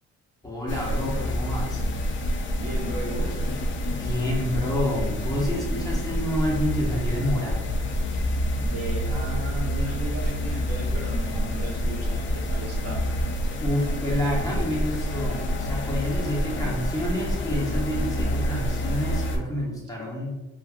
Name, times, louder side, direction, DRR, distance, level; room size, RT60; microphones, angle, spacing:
voice 1, 0.4-1.8 3.9-7.7 13.6-20.4, left 1 dB, 10° left, -4 dB, 1.0 m, -28 dB
sound 1, 0.7-19.4, equal, 40° left, 0.5 m, -27 dB
voice 2, 2.6-3.4 8.6-13.0, right 2 dB, 50° right, -2 dB, 0.8 m, -35 dB
2.4 x 2.2 x 3.5 m, 1.1 s
cardioid pair, 90°, 30 cm